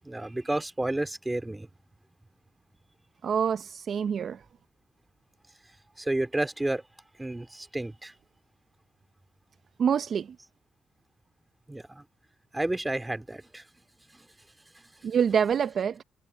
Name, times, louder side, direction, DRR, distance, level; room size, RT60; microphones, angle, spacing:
voice 1, 0.0-1.7 6.0-6.8 7.2-8.1 11.7-12.0 12.5-13.6 14.1-14.3, right 1 dB, 10° right, 2.4 m, -31 dB
voice 2, 3.2-4.4 9.8-10.4 15.0-16.0, right 7 dB, 55° right, 0.6 m, -26 dB
cardioid pair, 90°, 0 cm